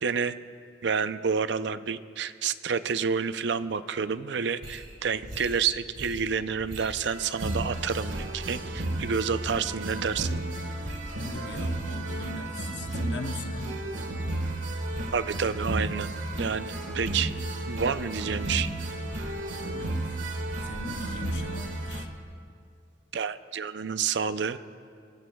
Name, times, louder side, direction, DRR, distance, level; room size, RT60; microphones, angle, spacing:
voice 1, 0.0-0.3 0.8-10.4 15.1-17.3 17.7-18.7 23.1-24.6, right 6 dB, 70° right, 12 dB, 0.5 m, -29 dB
sound 1, 4.6-4.8 5.2-5.6 6.0-6.3 6.6-22.1, right 1 dB, 90° right, 1.5 m, -33 dB
voice 2, 11.1-13.8 19.7-20.2 20.6-22.1, left 2 dB, 65° left, 6 dB, 0.9 m, -39 dB
25.0 x 22.0 x 2.3 m, 2.3 s
head